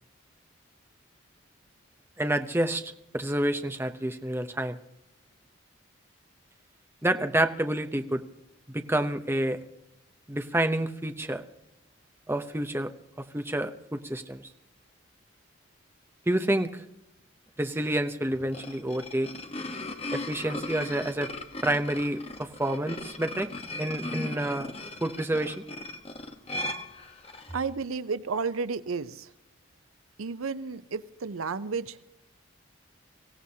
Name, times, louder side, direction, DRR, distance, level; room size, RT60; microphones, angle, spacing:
voice 1, 2.2-4.8 7.0-8.2 8.7-9.6 10.3-11.4 12.3-12.9 13.3-14.4 16.3-16.8 17.6-19.3 20.1-21.3 21.6-23.5 23.8-24.7 25.0-25.6, right 1 dB, 10° right, 7 dB, 0.7 m, -28 dB
sound 1, 18.3-27.6, left 2 dB, 30° left, 1.1 m, -37 dB
voice 2, 27.5-29.3 30.2-32.0, right 4 dB, 90° right, 15 dB, 0.6 m, -32 dB
24.5 x 16.0 x 2.8 m, 0.87 s
head